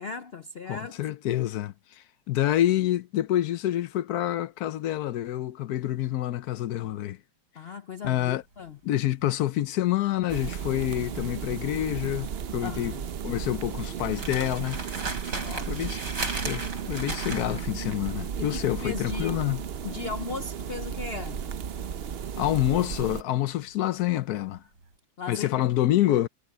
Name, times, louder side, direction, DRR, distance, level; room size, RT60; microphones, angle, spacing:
voice 1, 0.0-1.0 7.6-8.8 12.6-13.1 15.4-15.9 18.4-19.4 19.8-21.4 25.2-25.7, left 5 dB, 85° left, 0.5 m, -37 dB
voice 2, 0.7-1.7 2.3-7.2 8.0-8.4 8.8-12.9 13.2-14.8 15.1-15.2 15.7-16.0 16.4-19.6 22.4-24.6 25.3-26.3, left 13 dB, 65° left, 1.0 m, -27 dB
sound 1, 8.0-24.3 24.5-24.9, right 3 dB, 60° right, 5.7 m, -38 dB
sound 2, 10.3-23.2, right 7 dB, 80° right, 0.5 m, -34 dB
omnidirectional pair, 2.0 m